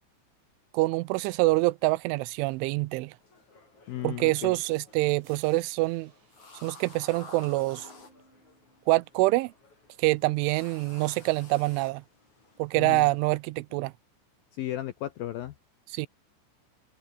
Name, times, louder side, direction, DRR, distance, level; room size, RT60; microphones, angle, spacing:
voice 1, 0.7-3.1 4.0-6.1 6.6-7.9 8.9-9.5 10.0-12.0 12.6-13.9 15.9-16.1, right 21 dB, 85° right, 3.1 m, -26 dB
sound 1, 3.2-13.4, left 3 dB, 35° left, 8.5 m, -53 dB
voice 2, 3.9-4.6 12.7-13.1 14.5-15.5, left 13 dB, 75° left, 2.1 m, -35 dB
sound 2, 5.2-7.9, right 8 dB, 70° right, 6.1 m, -61 dB
Keyboard (musical), 7.7-9.5, right 2 dB, 20° right, 5.5 m, -63 dB
open air
omnidirectional pair, 5.5 m